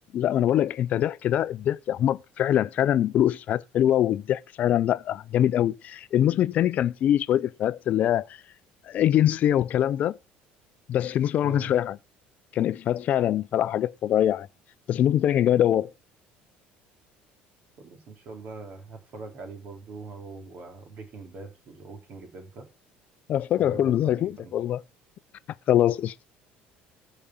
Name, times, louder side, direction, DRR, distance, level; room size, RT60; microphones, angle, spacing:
voice 1, 0.1-8.3 8.9-10.2 10.9-12.0 12.5-14.5 14.9-15.9 23.3-24.8 25.7-26.1, left 11 dB, 45° left, 0.5 m, -23 dB
voice 2, 11.4-11.7 17.8-22.7 23.6-24.5, right 3 dB, 45° right, 3.1 m, -42 dB
14.0 x 5.0 x 5.7 m
cardioid pair, 150°, 4 cm